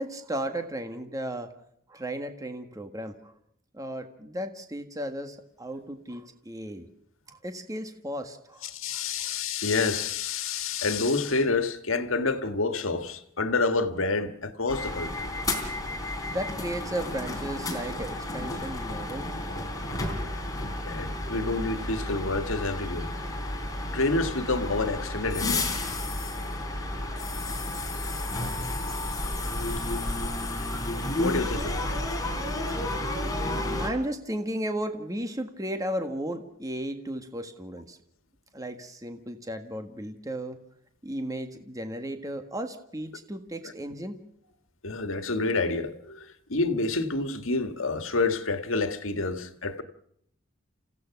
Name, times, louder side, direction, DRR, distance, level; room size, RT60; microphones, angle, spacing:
voice 1, 0.0-1.5 1.9-3.3 3.7-6.9 7.3-8.6 8.9-9.3 16.3-19.3 33.8-38.0 38.5-40.6 41.0-44.2, right 1 dB, 15° right, 1.6 m, -34 dB
voice 2, 8.6-15.3 20.8-23.1 23.9-25.9 31.2-32.0 43.6-43.7 44.8-49.8, left 3 dB, 90° left, 1.7 m, -28 dB
sound 1, 14.7-33.9, left 2 dB, 20° left, 3.5 m, -32 dB
28.5 x 16.0 x 5.9 m
head